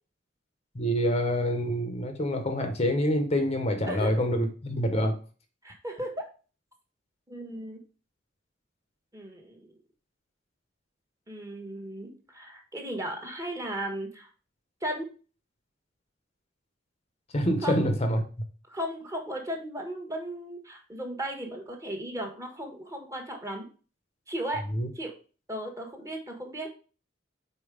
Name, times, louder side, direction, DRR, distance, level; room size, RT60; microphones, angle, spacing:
voice 1, 0.7-5.2 17.3-18.2 24.7-24.9, equal, 35° left, 6 dB, 0.8 m, -26 dB
voice 2, 5.6-6.2 7.3-7.8 9.1-9.7 11.3-14.3 14.8-15.1 17.6-17.8 18.7-23.7 24.3-24.7 24.9-25.1 25.5-26.7, right 1 dB, 15° right, 2 dB, 1.4 m, -36 dB
5.3 x 4.3 x 4.9 m, 0.37 s
head